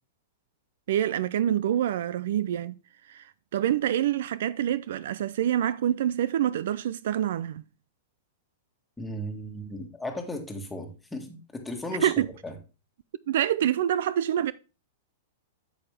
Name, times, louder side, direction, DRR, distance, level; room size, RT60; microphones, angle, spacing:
voice 1, 0.9-2.7 3.1-3.2 3.5-7.6 12.0-12.3 13.3-14.5, right 11 dB, 65° right, 0.4 m, -26 dB
voice 2, 9.0-12.1 12.4-12.5, left 1 dB, 10° left, 1.7 m, -36 dB
8.2 x 7.0 x 3.4 m
hypercardioid pair, 115°, 0 cm